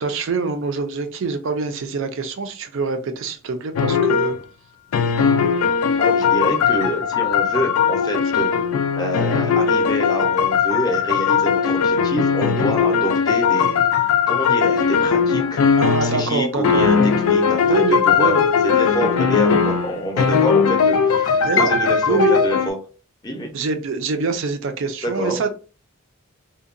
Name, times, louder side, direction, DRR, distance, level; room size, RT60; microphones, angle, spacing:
voice 1, 0.0-4.4 15.8-16.8 17.6-18.5 21.4-21.7 22.1-22.4 23.5-25.5, right 4 dB, 60° right, 7 dB, 0.4 m, -24 dB
sound 1, 3.8-4.4 4.9-16.4 16.6-22.7, left 6 dB, 80° left, 0.4 m, -19 dB
voice 2, 6.0-8.5 8.9-15.7 16.0-18.3 18.6-22.8 23.2-23.5 25.0-25.4, equal, 20° left, 1 dB, 0.5 m, -26 dB
2.7 x 2.2 x 2.5 m, 0.36 s
head